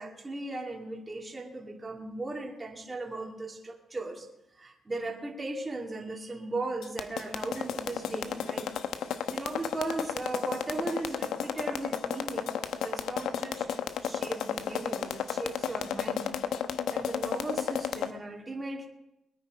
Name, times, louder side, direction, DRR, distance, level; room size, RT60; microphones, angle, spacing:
voice 1, 0.0-4.3 4.6-8.7 9.3-13.7 14.0-16.3 16.9-18.9, right 2 dB, 20° right, 0 dB, 2.7 m, -37 dB
sound 1, 6.8-18.1, left 9 dB, 75° left, 0.9 m, -32 dB
22.0 x 9.4 x 4.7 m, 0.88 s
cardioid pair, 90°, 0 cm